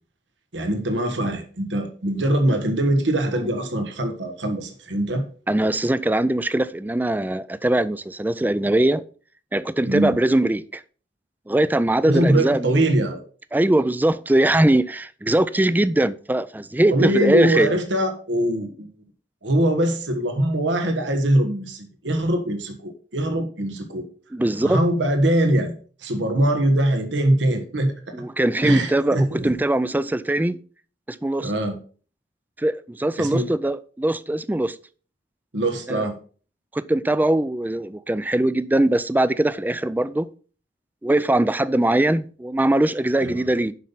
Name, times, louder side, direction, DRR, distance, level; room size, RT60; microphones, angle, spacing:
voice 1, 0.5-5.2 9.8-10.2 12.1-13.2 16.9-18.9 19.4-24.1 24.6-25.7 26.0-27.9 28.6-29.4 31.4-31.8 33.2-33.5 35.5-36.2 43.2-43.4, right 1 dB, 90° right, 1.4 m, -22 dB
voice 2, 5.5-9.0 9.5-10.8 11.5-12.9 13.5-17.8 24.3-24.8 28.1-30.6 31.1-31.5 32.6-34.8 35.9-36.1 36.7-40.3 41.0-43.7, right 1 dB, 10° right, 0.4 m, -21 dB
7.5 x 5.6 x 5.7 m
head